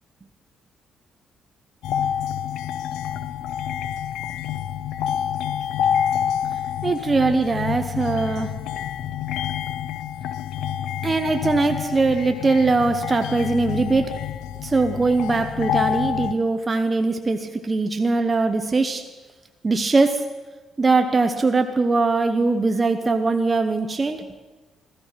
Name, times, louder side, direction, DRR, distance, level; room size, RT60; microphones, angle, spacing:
sound 1, 1.8-16.3, left 9 dB, 85° left, 0.6 m, -28 dB
voice 1, 6.8-8.5 11.0-14.1 14.6-19.0 19.6-20.2 20.8-24.2, right 3 dB, 25° right, 6 dB, 1.0 m, -21 dB
15.5 x 13.5 x 5.8 m, 1.2 s
cardioid pair, 90°, 0 cm